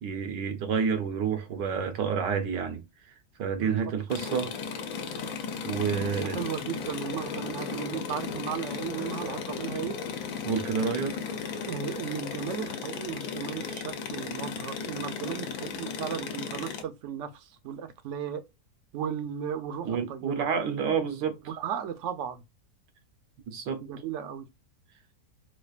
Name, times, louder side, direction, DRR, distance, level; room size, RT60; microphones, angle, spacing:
voice 1, 0.0-2.8 3.4-4.5 5.6-6.4 10.4-11.2 19.8-21.4 23.5-23.8, right 6 dB, 85° right, 1.5 m, -29 dB
voice 2, 3.6-3.9 5.9-10.0 11.7-18.4 18.9-20.5 21.5-22.4 23.8-24.5, right 8 dB, 60° right, 0.8 m, -36 dB
sound 1, 4.1-16.8, left 6 dB, 65° left, 1.1 m, -35 dB
4.4 x 2.4 x 2.4 m
omnidirectional pair, 1.8 m